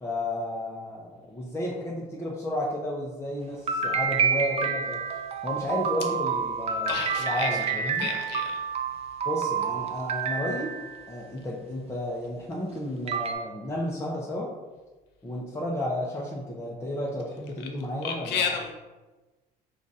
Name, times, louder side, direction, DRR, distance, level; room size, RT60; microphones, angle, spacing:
voice 1, 0.0-5.0 5.4-8.1 9.3-10.7 11.1-14.5 15.2-18.5, left 1 dB, 15° left, -4 dB, 0.7 m, -32 dB
sound 1, 3.7-11.1 12.5-12.6 13.1-13.3, right 6 dB, 35° right, 0.5 m, -29 dB
voice 2, 6.9-7.5 8.0-8.5 18.0-18.7, left 6 dB, 90° left, 3 dB, 0.8 m, -30 dB
4.9 x 2.5 x 4.1 m, 1.2 s
cardioid pair, 110°, 17 cm